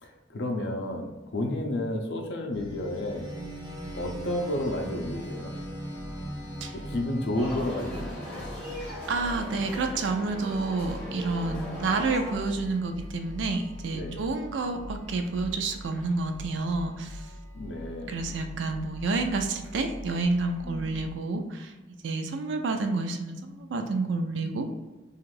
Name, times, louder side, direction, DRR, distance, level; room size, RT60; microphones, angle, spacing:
voice 1, 0.0-3.2 3.9-5.5 6.7-8.5 11.5-11.6 13.9-14.2 17.5-18.2 20.6-21.0, left 1 dB, 60° left, 2 dB, 0.5 m, -32 dB
sound 1, 2.5-21.2, equal, 20° right, 0.7 m, -41 dB
sound 2, 7.3-12.4, equal, 10° left, 0.9 m, -39 dB
voice 2, 9.1-17.2 17.8-21.7 22.0-24.7, right 3 dB, 70° right, 6 dB, 0.4 m, -29 dB
2.5 x 2.4 x 3.1 m, 1.2 s
head